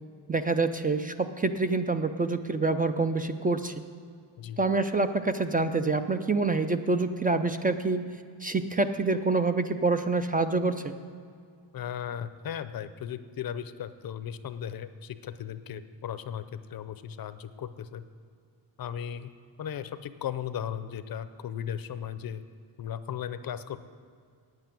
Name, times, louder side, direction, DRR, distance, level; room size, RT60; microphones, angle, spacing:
voice 1, 0.3-3.8 4.6-8.1 8.4-11.0, right 3 dB, 20° right, 8 dB, 0.3 m, -26 dB
voice 2, 11.7-18.0 18.8-19.3 19.6-22.4 22.8-23.8, left 9 dB, 50° left, 12 dB, 0.6 m, -36 dB
9.1 x 8.0 x 9.1 m, 2.3 s
wide cardioid pair, 140°, 45 cm